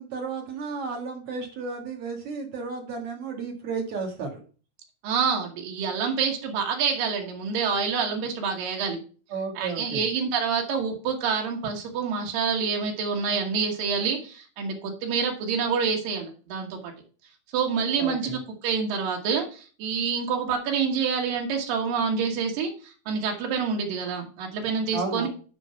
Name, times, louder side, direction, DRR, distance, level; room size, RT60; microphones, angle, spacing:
voice 1, 0.0-4.4 9.3-10.1 18.0-18.4 24.9-25.3, right 4 dB, 50° right, 2 dB, 2.3 m, -33 dB
voice 2, 5.0-9.0 9.6-16.9 17.5-25.3, right 6 dB, 85° right, 1 dB, 3.1 m, -27 dB
9.8 x 3.9 x 5.6 m, 0.38 s
omnidirectional pair, 3.8 m